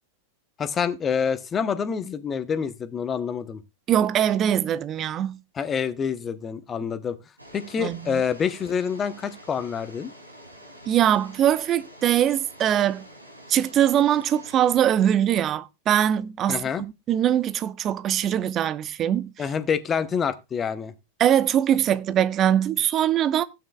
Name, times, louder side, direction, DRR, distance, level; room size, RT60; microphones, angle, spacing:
voice 1, 0.6-3.6 5.6-7.2 7.5-10.1 16.5-16.8 19.4-20.9, left 7 dB, 20° left, 1.1 m, -27 dB
voice 2, 3.9-5.4 7.8-8.2 10.9-13.0 13.5-19.3 21.2-23.4, right 10 dB, 30° right, 0.8 m, -22 dB
sound 1, 7.4-14.9, equal, 85° right, 3.1 m, -47 dB
16.0 x 9.0 x 2.4 m
figure-of-eight pair, 90°, 0 cm